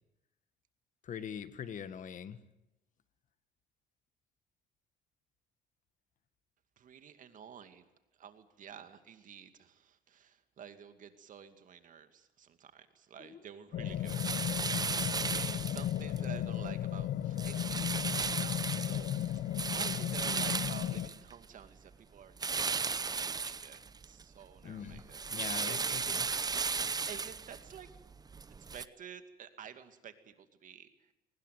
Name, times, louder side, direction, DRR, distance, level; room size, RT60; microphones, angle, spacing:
voice 1, 1.0-2.4 13.2-13.4 24.6-25.0 25.3-26.3, left 8 dB, 50° left, 12 dB, 1.7 m, -42 dB
voice 2, 6.8-7.9 8.2-25.2 25.6-26.4 26.8-27.9 28.6-31.1, right 8 dB, 50° right, 9 dB, 2.3 m, -51 dB
sound 1, 13.7-21.1, left 11 dB, 65° left, 1.0 m, -35 dB
sound 2, 14.1-16.3 16.7-17.0 17.4-21.7 22.4-24.2 24.6-28.9, right 5 dB, 25° right, 0.8 m, -36 dB
23.5 x 19.5 x 9.3 m, 0.90 s
cardioid pair, 110°, 17 cm